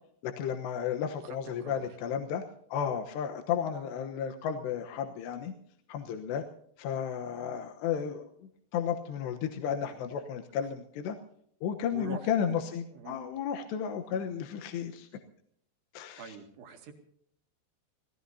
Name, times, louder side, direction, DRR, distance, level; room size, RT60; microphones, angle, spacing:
voice 1, 0.2-2.4 2.7-5.5 5.9-6.4 6.8-11.2 11.6-15.1 15.9-16.4, left 8 dB, 85° left, 4 dB, 3.3 m, -33 dB
voice 2, 1.2-1.9 9.9-10.0 11.9-12.2 12.9-13.2 14.1-14.3 16.2-16.9, right 6 dB, 80° right, 4 dB, 4.2 m, -45 dB
27.0 x 18.5 x 2.8 m, 0.68 s
omnidirectional pair, 4.8 m